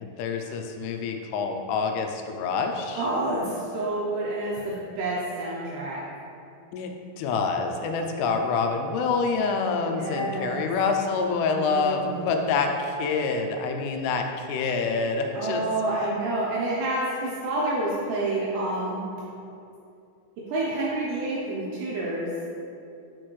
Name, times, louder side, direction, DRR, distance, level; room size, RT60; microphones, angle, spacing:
voice 1, 0.0-3.0 6.7-15.6, left 4 dB, 85° left, 4 dB, 3.0 m, -27 dB
voice 2, 2.9-6.0 9.8-10.7 11.5-12.3 15.3-19.0 20.5-22.3, right 2 dB, 80° right, -5 dB, 2.5 m, -28 dB
6.6 x 6.2 x 3.1 m, 2.6 s
omnidirectional pair, 5.6 m